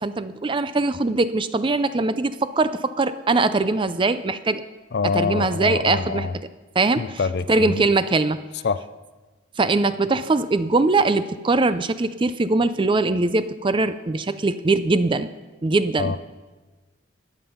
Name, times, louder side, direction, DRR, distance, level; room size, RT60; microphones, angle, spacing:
voice 1, 0.0-4.6 5.1-6.3 6.8-7.2 7.5-8.4 9.6-15.3 15.6-16.1, right 3 dB, 25° right, 13 dB, 0.4 m, -21 dB
voice 2, 4.9-6.3 7.0-7.8 8.6-8.8 16.0-16.2, left 5 dB, 50° left, 15 dB, 0.4 m, -25 dB
14.5 x 9.4 x 5.5 m, 1.3 s
head